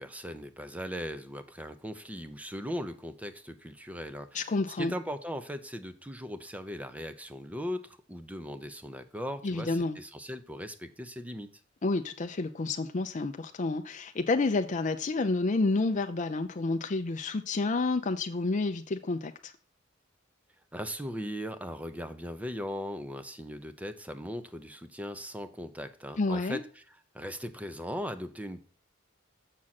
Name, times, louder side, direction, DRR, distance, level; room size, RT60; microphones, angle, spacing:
voice 1, 0.0-11.5 20.7-26.8 27.1-28.6, equal, 5° right, 0.7 m, -39 dB
voice 2, 4.3-4.9 9.4-10.0 11.8-19.5 26.2-26.6, left 3 dB, 40° left, 0.5 m, -29 dB
7.5 x 6.2 x 4.1 m
head